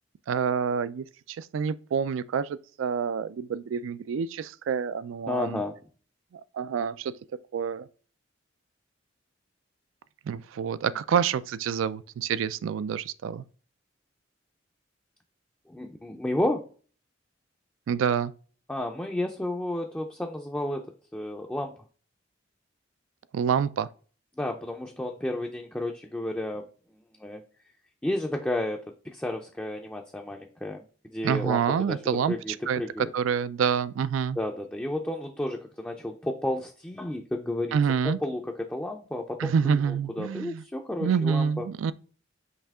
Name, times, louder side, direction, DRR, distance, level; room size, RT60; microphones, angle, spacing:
voice 1, 0.3-5.6 6.5-7.1 7.5-7.9 10.3-13.4 17.9-18.3 23.3-23.9 31.2-34.4 37.7-38.2 39.4-40.6 41.0-41.9, right 7 dB, 90° right, 0.3 m, -27 dB
voice 2, 5.3-5.8 15.7-16.7 18.7-20.9 21.1-21.7 24.4-26.7 27.2-27.4 28.0-33.1 34.4-37.8 38.0-41.7, left 1 dB, 5° left, 0.4 m, -32 dB
5.6 x 2.8 x 3.5 m
head